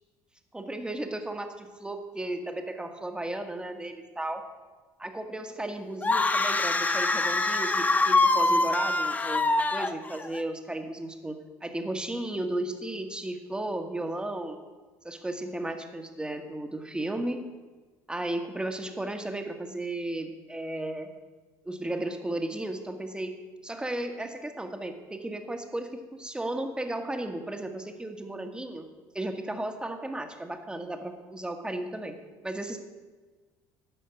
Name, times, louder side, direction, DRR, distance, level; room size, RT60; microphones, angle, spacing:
voice 1, 0.5-4.4 5.0-14.6 15.0-17.6 18.1-21.1 21.6-23.4 23.6-28.9 29.1-32.2 32.4-32.8, right 1 dB, 10° right, 5 dB, 1.5 m, -34 dB
sound 1, 6.0-10.4, left 2 dB, 15° left, 0.7 m, -24 dB
12.0 x 5.0 x 8.3 m, 1.3 s
supercardioid pair, 80°, 9 cm